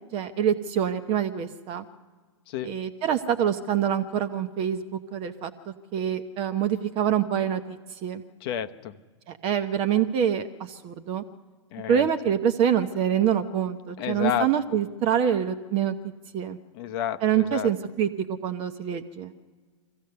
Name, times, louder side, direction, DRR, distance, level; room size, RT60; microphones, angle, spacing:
voice 1, 0.1-1.8 2.6-4.8 5.1-8.2 9.3-11.2 11.9-16.0 16.3-16.6 17.2-18.1 18.4-19.3, right 9 dB, 35° right, 8 dB, 0.9 m, -26 dB
voice 2, 8.4-8.9 11.7-12.1 14.0-14.5 16.7-17.7, left 11 dB, 50° left, 9 dB, 0.9 m, -30 dB
24.5 x 15.5 x 6.8 m, 1.5 s
hypercardioid pair, 115°, 16 cm